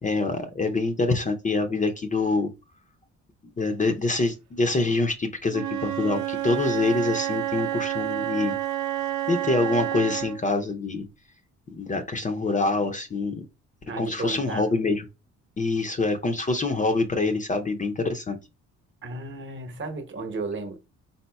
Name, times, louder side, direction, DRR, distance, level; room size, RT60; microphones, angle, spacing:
voice 1, 0.0-2.5 3.6-8.6 9.3-11.1 11.7-13.3 14.0-15.0 15.6-18.4, left 3 dB, 25° left, 0.6 m, -25 dB
Wind instrument woodwind instrument, 5.5-10.5, right 13 dB, 70° right, 0.6 m, -29 dB
voice 2, 13.9-14.7 19.0-20.8, right 3 dB, 40° right, 1.0 m, -34 dB
4.1 x 3.7 x 2.2 m
cardioid pair, 90°, 30 cm